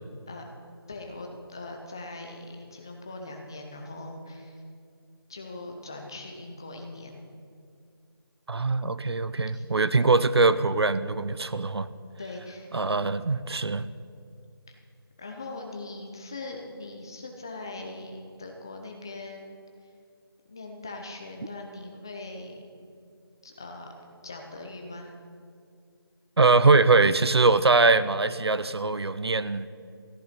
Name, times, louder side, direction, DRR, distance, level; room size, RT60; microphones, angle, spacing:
voice 1, 0.9-4.6 5.3-7.2 9.5-9.6 12.2-12.7 15.2-19.5 19.8-19.9 20.5-22.6 23.4-23.9 24.2-25.1, left 2 dB, 10° left, 3 dB, 0.5 m, -41 dB
voice 2, 8.5-11.9 12.7-13.9 26.4-29.7, right 3 dB, 90° right, 14 dB, 0.7 m, -22 dB
13.5 x 9.9 x 5.8 m, 2.4 s
figure-of-eight pair, 170°, 13 cm